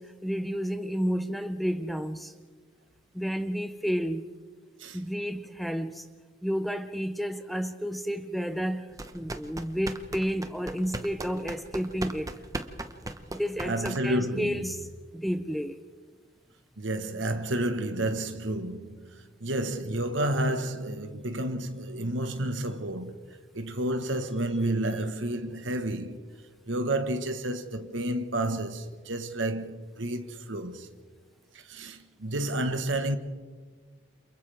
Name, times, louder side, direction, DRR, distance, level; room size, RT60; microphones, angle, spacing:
voice 1, 0.0-2.3 3.1-4.3 4.9-6.1 6.4-12.4 13.3-14.9 15.1-15.8, equal, ahead, 0.6 m, -31 dB
sound 1, 8.9-14.3, right 2 dB, 20° right, 1.0 m, -38 dB
voice 2, 13.6-14.7 16.8-19.1 19.4-26.2 26.7-30.9 31.5-33.2, right 1 dB, 75° right, 1.4 m, -30 dB
29.5 x 28.0 x 3.5 m
head